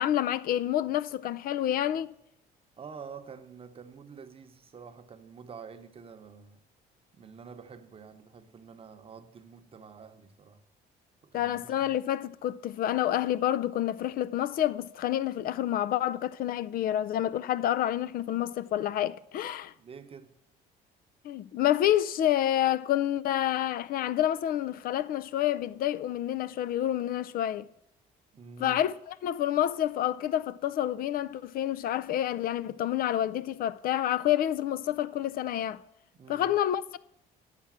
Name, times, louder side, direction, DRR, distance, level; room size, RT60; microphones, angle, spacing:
voice 1, 0.0-2.1 11.3-19.7 21.2-27.7 28.6-35.8 36.3-37.0, left 12 dB, 60° left, 0.4 m, -28 dB
voice 2, 2.8-6.6 7.1-10.6 11.2-11.9 19.8-20.3 28.3-28.8 36.2-36.5, right 6 dB, 35° right, 0.8 m, -48 dB
8.4 x 5.9 x 7.4 m
cardioid pair, 110°, 17 cm